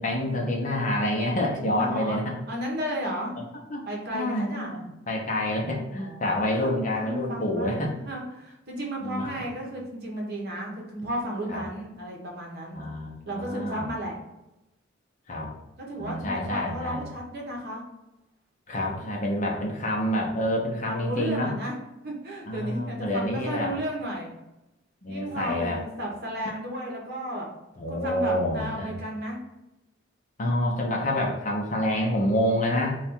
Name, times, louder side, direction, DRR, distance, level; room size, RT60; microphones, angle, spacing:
voice 1, 0.0-2.3 3.7-3.9 4.1-7.9 9.0-9.3 11.5-11.6 12.7-13.9 15.3-15.5 16.0-17.1 18.7-21.5 22.5-23.7 25.0-25.8 26.4-26.6 27.8-28.9 30.4-33.0, left 1 dB, 40° left, 0 dB, 0.7 m, -28 dB
voice 2, 1.8-2.2 2.5-3.4 3.9-4.7 6.0-12.8 13.3-14.2 15.8-17.8 20.6-21.7 22.0-24.3 25.1-27.5 27.9-29.4, equal, 55° right, -2 dB, 1.0 m, -33 dB
3.4 x 2.4 x 4.2 m, 0.95 s
head